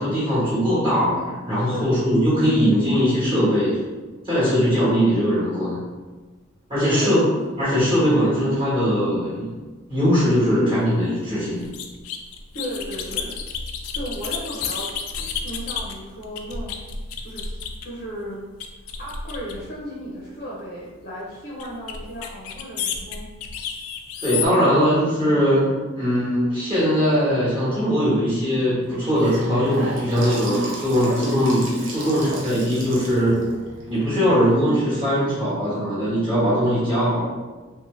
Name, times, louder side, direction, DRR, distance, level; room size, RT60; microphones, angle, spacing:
voice 1, 0.0-3.8 4.2-5.8 6.7-7.2 7.6-9.5 9.9-11.6 24.2-25.7 25.9-33.3 33.9-37.2, equal, 25° right, -11 dB, 1.0 m, -20 dB
voice 2, 1.7-2.0 6.9-7.4 12.5-13.3 13.9-16.8 17.2-18.4 19.0-23.3 24.2-25.6 30.9-31.2 32.0-32.4 33.1-33.5, equal, 45° left, -6 dB, 0.6 m, -35 dB
sound 1, 11.6-18.0 18.6-19.8 21.6-24.5, left 6 dB, 90° left, 0.3 m, -31 dB
Gurgling / Sink (filling or washing) / Bathtub (filling or washing), 28.8-34.9, right 2 dB, 60° right, 0.6 m, -35 dB
2.6 x 2.2 x 3.0 m, 1.3 s
head